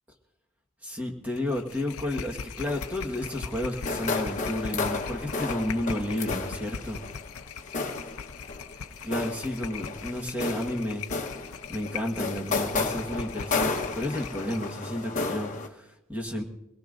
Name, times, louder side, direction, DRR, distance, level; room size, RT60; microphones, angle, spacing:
voice 1, 0.8-7.0 9.0-11.4 11.7-16.4, left 1 dB, 5° right, 0 dB, 1.5 m, -32 dB
sound 1, 1.3-14.7, left 6 dB, 80° left, 0.6 m, -40 dB
sound 2, 2.6-15.7, left 4 dB, 35° left, 1.1 m, -33 dB
23.5 x 18.0 x 2.6 m, 0.88 s
head